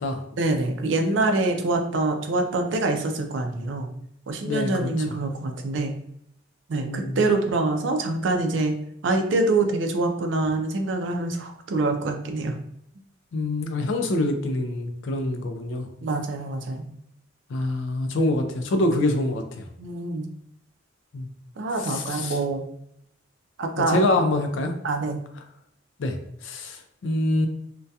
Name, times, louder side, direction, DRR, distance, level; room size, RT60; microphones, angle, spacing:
voice 1, 0.4-3.9 4.3-5.9 6.7-8.8 9.0-12.5 16.0-16.9 19.8-20.3 21.6-22.7 23.6-24.0 24.8-25.2, right 2 dB, 65° right, 5 dB, 0.4 m, -25 dB
voice 2, 4.4-5.2 6.8-7.2 13.3-15.9 17.5-19.6 21.1-21.3 21.8-22.4 23.9-24.7 26.0-26.2 26.4-27.5, left 1 dB, 70° left, 6 dB, 0.4 m, -25 dB
2.6 x 2.2 x 2.3 m, 0.72 s
head